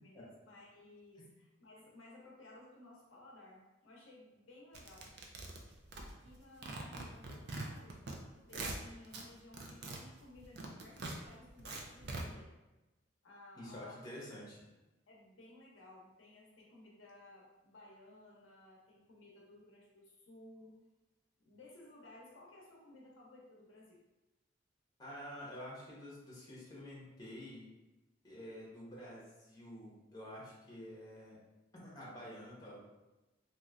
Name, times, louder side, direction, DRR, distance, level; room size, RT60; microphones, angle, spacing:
voice 1, 0.0-5.1 5.9-8.0 8.5-12.5 13.2-14.1 15.1-20.8 21.4-24.0, left 2 dB, 85° left, -2 dB, 0.7 m, -57 dB
sound 1, 4.7-6.4 6.6-8.2 8.4-9.2 9.5-12.2, right 2 dB, 60° right, 0.4 m, -43 dB
voice 2, 13.6-14.6 25.0-27.7 28.2-31.4 31.7-32.8, equal, 20° left, -6 dB, 0.9 m, -49 dB
3.0 x 2.7 x 2.4 m, 1.1 s
head